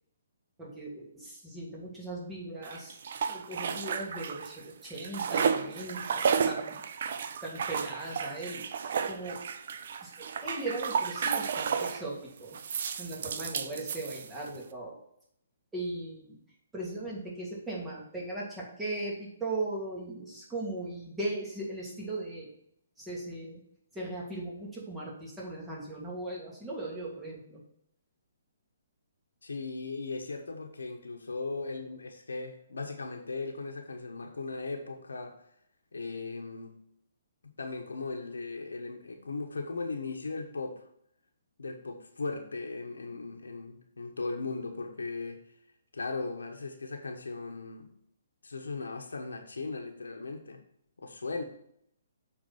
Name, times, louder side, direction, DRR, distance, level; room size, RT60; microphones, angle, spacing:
voice 1, 0.6-3.0 3.3-6.8 7.4-8.6 9.1-9.4 10.0-12.6 13.0-15.0 15.7-22.5 23.0-23.6 23.9-27.6, right 2 dB, 10° right, -5 dB, 2.7 m, -38 dB
sound 1, 2.6-4.6 4.8-12.1 12.5-14.6, right 6 dB, 55° right, 0.6 m, -32 dB
voice 2, 29.4-35.3 35.9-36.7 37.4-40.8 41.6-45.4 45.9-47.9 48.4-50.6 51.0-51.4, left 3 dB, 80° left, 4 dB, 1.3 m, -38 dB
7.6 x 4.4 x 6.0 m, 0.72 s
hypercardioid pair, 140°, 0 cm